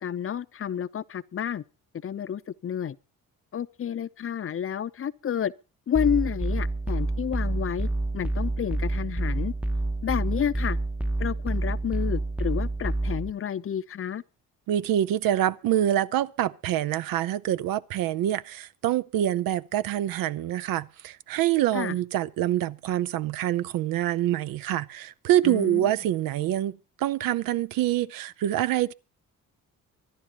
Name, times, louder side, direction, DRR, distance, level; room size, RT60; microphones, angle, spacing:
voice 1, 0.0-1.6 1.9-3.0 3.5-5.5 5.9-9.5 10.0-10.8 11.2-14.2 21.7-21.9 25.4-25.8, left 9 dB, 40° left, 0.7 m, -30 dB
sound 1, 5.9-13.3, right 2 dB, 5° right, 0.7 m, -28 dB
voice 2, 14.7-28.9, right 12 dB, 80° right, 0.7 m, -26 dB
24.5 x 11.0 x 2.9 m
cardioid pair, 75°, 33 cm